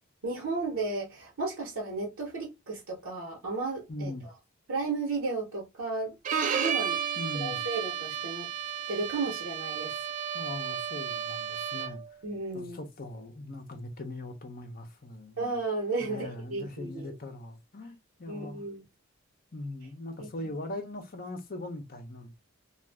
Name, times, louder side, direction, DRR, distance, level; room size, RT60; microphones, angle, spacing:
voice 1, 0.2-4.1 4.7-6.2 6.6-7.0 7.3-8.5 8.9-10.0 12.2-12.8 15.4-17.1 18.3-18.8 20.2-20.3, right 3 dB, 80° right, 1.0 m, -33 dB
voice 2, 3.9-4.3 7.2-7.6 10.3-12.0 12.5-15.4 16.0-18.6 19.5-22.3, left 2 dB, 45° left, 0.7 m, -40 dB
Bowed string instrument, 6.3-12.1, right 8 dB, 35° right, 0.3 m, -33 dB
2.6 x 2.4 x 3.4 m
head